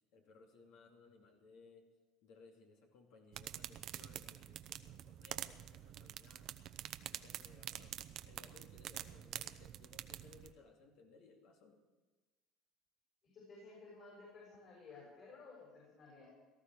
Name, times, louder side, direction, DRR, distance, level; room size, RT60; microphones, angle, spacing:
voice 1, 0.1-1.8 2.2-6.5 7.1-8.0 8.2-11.8, left 4 dB, 75° left, 1 dB, 2.5 m, -62 dB
sound 1, 3.3-10.5, right 12 dB, 55° right, 0.8 m, -47 dB
voice 2, 13.2-16.3, left 3 dB, 45° left, -4 dB, 6.4 m, -55 dB
18.0 x 14.0 x 4.7 m, 1.3 s
cardioid pair, 120°, 0 cm